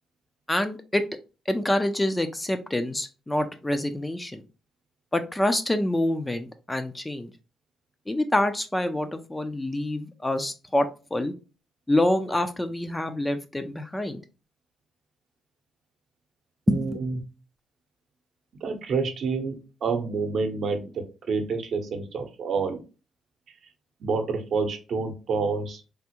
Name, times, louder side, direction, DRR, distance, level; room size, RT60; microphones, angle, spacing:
voice 1, 0.5-1.0 1.5-4.4 5.1-7.3 8.1-11.3 11.9-14.2 16.7-17.0, left 1 dB, 15° left, 8 dB, 0.4 m, -26 dB
voice 2, 16.7-17.1 18.6-22.8 24.0-25.8, right 4 dB, 60° right, 5 dB, 0.7 m, -28 dB
3.4 x 2.0 x 2.9 m, 0.32 s
cardioid pair, 90°, 0 cm